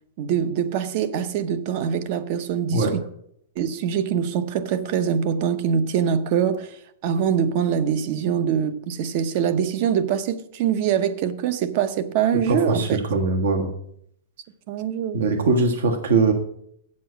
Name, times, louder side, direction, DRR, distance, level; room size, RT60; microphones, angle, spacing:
voice 1, 0.2-3.0 3.6-6.8 7.0-13.0 14.7-15.2, right 8 dB, 40° right, 0.7 m, -24 dB
voice 2, 12.5-13.7 15.1-16.3, right 3 dB, 75° right, 1.5 m, -21 dB
8.2 x 7.5 x 5.7 m
supercardioid pair, 170°, 0 cm